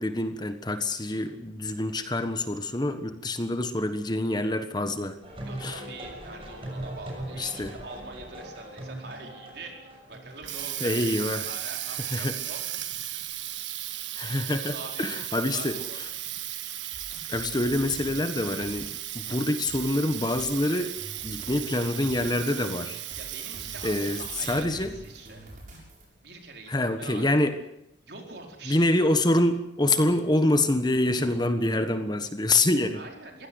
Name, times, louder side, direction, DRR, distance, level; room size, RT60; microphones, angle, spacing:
voice 1, 0.0-5.2 5.6-5.8 7.4-7.7 10.8-11.5 12.1-12.3 14.1-15.8 17.3-20.9 21.2-23.0 23.8-24.9 26.7-27.5 28.7-33.0, left 1 dB, 25° left, 9 dB, 1.4 m, -26 dB
sound 1, 5.2-10.4, right 1 dB, 30° right, 6.6 m, -39 dB
voice 2, 5.4-11.1 11.4-12.6 14.5-16.3 23.2-25.4 26.2-27.3 28.0-29.0 32.9-33.5, right 3 dB, 60° right, 2 dB, 4.8 m, -44 dB
Water tap faucet, 10.1-24.8, right 13 dB, 85° right, 1.5 m, -36 dB
sound 2, 16.9-26.0, right 1 dB, 45° right, 7.5 m, -46 dB
23.0 x 16.5 x 8.1 m, 0.79 s
head